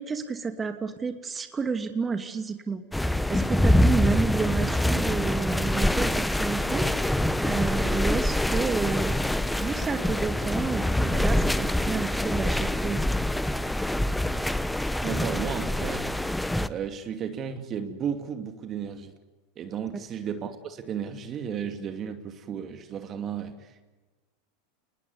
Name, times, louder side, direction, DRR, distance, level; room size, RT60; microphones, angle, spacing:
voice 1, 0.0-9.2 9.6-13.0, right 5 dB, 20° right, 7 dB, 2.7 m, -31 dB
sound 1, 2.9-16.7, left 1 dB, 5° left, 1.1 m, -25 dB
voice 2, 15.0-16.3 16.7-19.1 19.6-23.9, right 7 dB, 35° right, 7 dB, 2.7 m, -34 dB
29.0 x 20.5 x 9.8 m, 1.3 s
hypercardioid pair, 95°, 0 cm